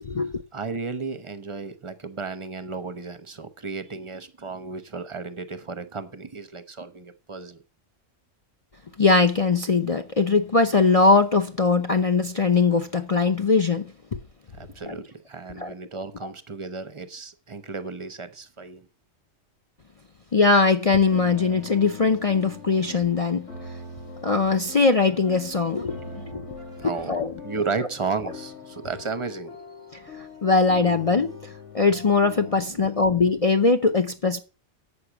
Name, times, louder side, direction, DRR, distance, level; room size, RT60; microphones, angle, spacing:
voice 1, 0.0-0.4 9.0-13.9 14.1-14.2 14.8-15.0 15.6-15.7 20.3-23.5 24.2-26.5 26.8-27.3 30.2-34.4, left 4 dB, 35° left, 0.7 m, -21 dB
voice 2, 0.5-7.6 14.5-18.8 25.9-26.2 26.6-29.6 32.7-32.9, right 4 dB, 25° right, 0.9 m, -34 dB
sound 1, 21.1-32.6, left 4 dB, 70° left, 2.3 m, -42 dB
8.6 x 6.6 x 7.1 m
omnidirectional pair, 1.3 m